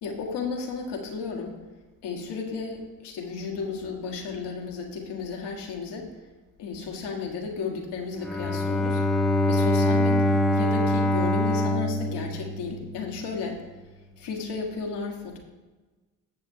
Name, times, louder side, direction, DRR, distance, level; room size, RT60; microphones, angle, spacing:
voice 1, 0.0-1.6 2.0-6.1 6.6-9.0 9.5-13.6 14.2-15.4, left 4 dB, 75° left, 1 dB, 1.5 m, -33 dB
Bowed string instrument, 8.1-13.2, left 1 dB, ahead, 0.8 m, -24 dB
13.5 x 7.1 x 2.8 m, 1.2 s
supercardioid pair, 55°, 42 cm